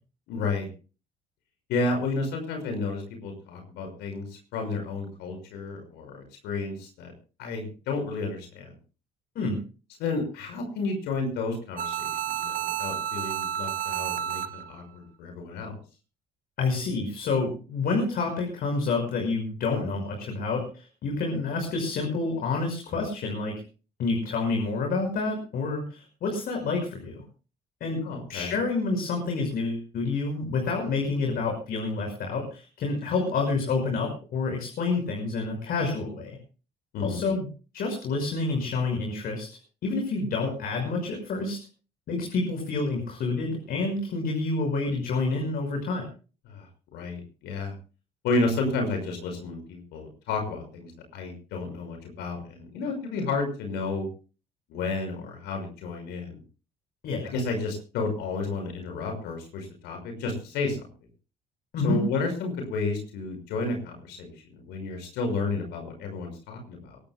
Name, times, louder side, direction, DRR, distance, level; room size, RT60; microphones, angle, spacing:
voice 1, 0.3-0.7 1.7-7.1 7.4-8.7 10.0-15.8 28.0-28.5 36.9-37.3 46.5-46.7 46.9-47.7 48.2-54.1 54.7-56.4 57.2-60.9 61.8-67.0, left 3 dB, 90° left, 4 dB, 5.9 m, -31 dB
sound 1, 11.8-14.8, right 10 dB, 55° right, 1.8 m, -31 dB
voice 2, 16.6-23.6 24.0-27.2 27.8-28.0 28.3-36.4 37.0-37.5 37.7-41.6 42.1-46.1 57.0-57.3 61.7-62.0, left 3 dB, 65° left, 2 dB, 5.9 m, -28 dB
23.5 x 19.0 x 2.3 m, 0.36 s
cardioid pair, 110°, 17 cm